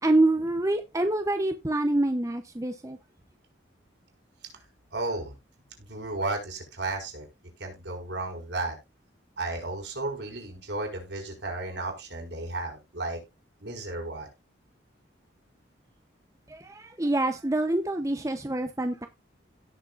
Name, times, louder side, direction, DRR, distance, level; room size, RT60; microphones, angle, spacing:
voice 1, 0.0-3.0 16.5-19.1, right 2 dB, 15° right, 0.7 m, -26 dB
voice 2, 4.9-5.3 5.8-7.3 7.6-8.8 9.4-13.2 13.6-14.3, right 2 dB, 70° right, 4.9 m, -33 dB
17.0 x 6.6 x 2.5 m
head